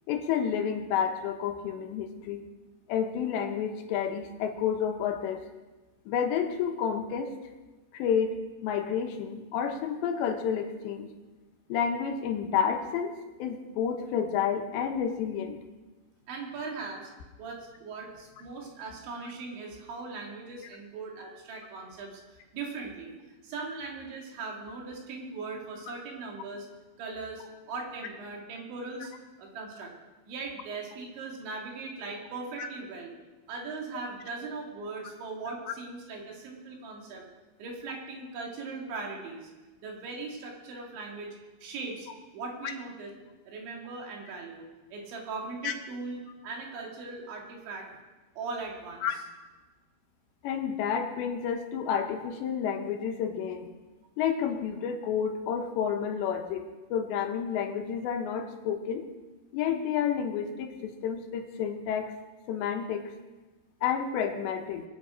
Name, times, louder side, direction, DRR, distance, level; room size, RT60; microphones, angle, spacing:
voice 1, 0.1-2.4 2.9-5.4 6.1-7.3 7.9-11.1 11.7-15.6 32.6-32.7 45.6-45.7 49.0-49.2 50.4-53.7 54.2-59.0 59.5-62.1 62.5-63.0 63.8-64.8, left 7 dB, 75° left, 5 dB, 3.1 m, -30 dB
voice 2, 16.3-17.1 17.4-23.1 23.4-26.7 27.0-29.1 29.4-29.9 30.2-33.1 33.5-37.2 37.6-39.5 39.8-42.1 42.3-43.1 43.5-47.9 48.4-49.2, right 4 dB, 75° right, -1 dB, 4.7 m, -39 dB
22.0 x 9.4 x 5.0 m, 1.2 s
omnidirectional pair, 5.3 m